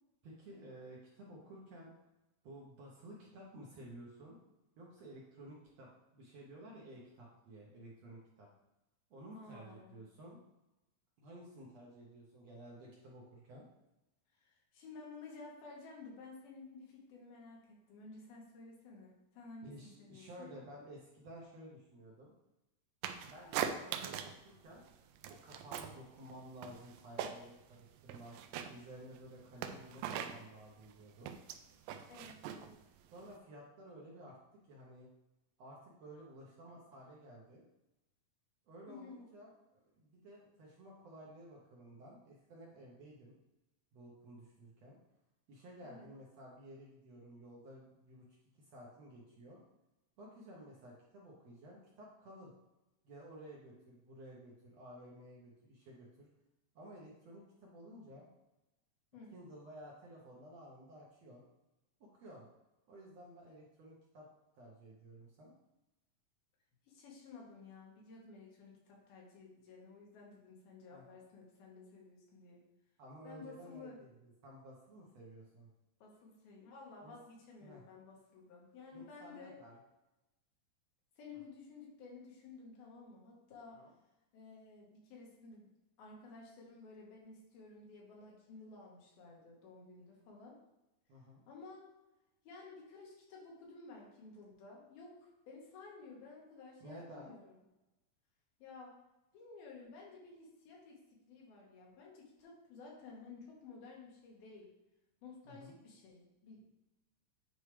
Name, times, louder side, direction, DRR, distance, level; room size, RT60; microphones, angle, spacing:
voice 1, 0.2-1.9 2.4-4.4 4.8-8.5 9.1-10.4 11.2-13.7 19.6-22.3 23.2-24.8 25.3-31.3 33.1-34.4 34.6-35.1 35.6-37.7 38.7-43.3 43.9-45.0 45.5-48.3 48.5-49.6 50.2-52.5 53.0-56.3 56.8-58.3 59.3-61.4 62.0-62.5 62.9-64.3 64.6-65.5 70.9-71.2 73.0-75.7 77.0-77.2 77.6-77.8 78.9-79.8 83.7-83.9 91.1-91.4 96.8-97.3 105.5-105.8, right 1 dB, 65° right, -4 dB, 1.8 m, -54 dB
voice 2, 9.3-10.0 14.3-20.5 32.1-32.8 38.9-39.2 45.8-46.1 59.1-59.3 66.9-72.6 73.2-74.0 76.0-79.6 81.2-83.8 84.3-85.7 86.0-90.6 91.5-91.9 92.4-97.5 98.6-98.9 99.3-104.7 105.2-106.7, left 4 dB, 85° left, -2 dB, 3.5 m, -54 dB
sound 1, 23.0-24.4 24.7-26.0 26.3-27.7 28.0-33.4, right 9 dB, 80° right, 2.1 m, -41 dB
9.4 x 4.7 x 3.3 m, 0.97 s
omnidirectional pair, 4.2 m